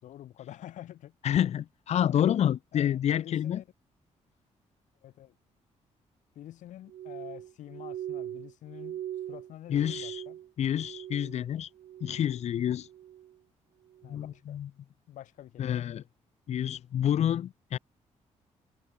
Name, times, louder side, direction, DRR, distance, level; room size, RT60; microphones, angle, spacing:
voice 1, 0.0-1.1 2.7-3.6 5.0-5.3 6.3-9.0 9.3-10.4 14.0-14.6 15.1-15.9, left 12 dB, 85° left, 4.3 m, -47 dB
voice 2, 1.2-3.6 9.7-10.2 10.6-11.7 12.0-12.9 14.0-14.7 15.6-16.0 16.5-17.8, left 10 dB, 60° left, 1.3 m, -28 dB
Glass, 6.9-11.5 11.7-12.4 12.8-13.3 13.9-14.2, right 11 dB, 80° right, 5.3 m, -41 dB
cardioid pair, 135°, 12 cm